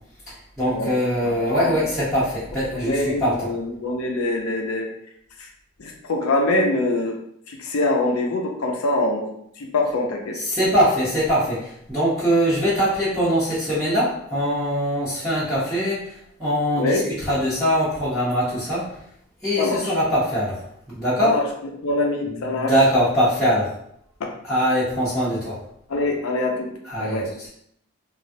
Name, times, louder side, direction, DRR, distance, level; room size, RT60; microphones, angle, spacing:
voice 1, 0.3-3.3 10.5-17.0 17.3-18.8 19.4-20.6 20.9-21.3 22.5-23.7 24.5-25.6 26.9-27.2, equal, ahead, -14 dB, 0.8 m, -22 dB
voice 2, 1.2-1.9 2.7-4.9 5.4-5.5 5.8-7.2 7.5-9.3 9.6-10.4 16.8-17.0 19.6-20.0 21.2-21.5 21.8-22.8 24.2-24.3 25.9-26.7 27.0-27.3, left 2 dB, 80° left, 1 dB, 0.5 m, -24 dB
3.1 x 2.3 x 2.7 m, 0.73 s
head